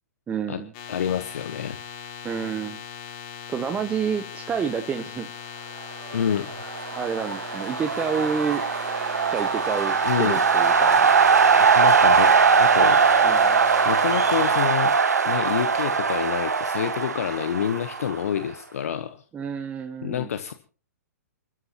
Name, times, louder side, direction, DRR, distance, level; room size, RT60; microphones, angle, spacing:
voice 1, 0.3-0.7 2.2-2.8 3.5-5.3 7.0-8.6 9.3-11.0 13.2-13.6 19.3-20.3, right 6 dB, 15° right, 8 dB, 1.0 m, -29 dB
sound 1, 0.7-14.6, left 8 dB, 40° left, 3.7 m, -39 dB
voice 2, 0.9-1.8 6.1-6.5 10.0-10.4 11.6-13.0 13.8-14.9 15.2-19.2 20.0-20.5, left 9 dB, 60° left, 10 dB, 1.1 m, -27 dB
sound 2, 6.5-18.4, right 5 dB, 75° right, 1.6 m, -20 dB
29.0 x 13.0 x 3.0 m, 0.38 s
figure-of-eight pair, 120°, 9 cm